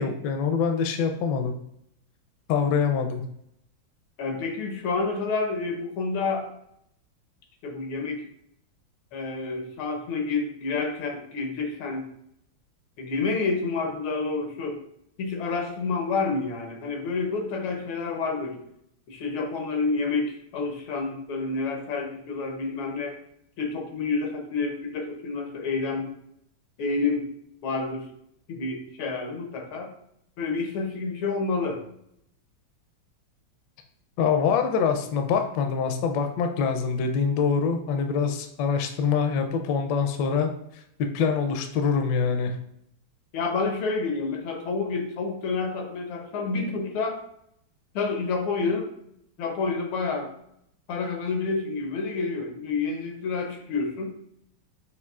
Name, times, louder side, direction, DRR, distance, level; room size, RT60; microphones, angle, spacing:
voice 1, 0.0-1.5 2.5-3.2 34.2-40.5 41.0-42.6, left 6 dB, 75° left, 5 dB, 1.1 m, -24 dB
voice 2, 4.2-6.5 7.6-8.2 9.1-12.0 13.0-14.8 15.2-18.6 19.1-23.2 23.6-26.0 26.8-27.3 27.6-28.1 28.5-29.9 30.4-31.8 43.3-47.2 47.9-48.9 49.4-50.3 50.9-54.1, left 4 dB, 90° left, 3 dB, 1.7 m, -29 dB
6.7 x 2.6 x 2.3 m, 0.74 s
omnidirectional pair, 2.2 m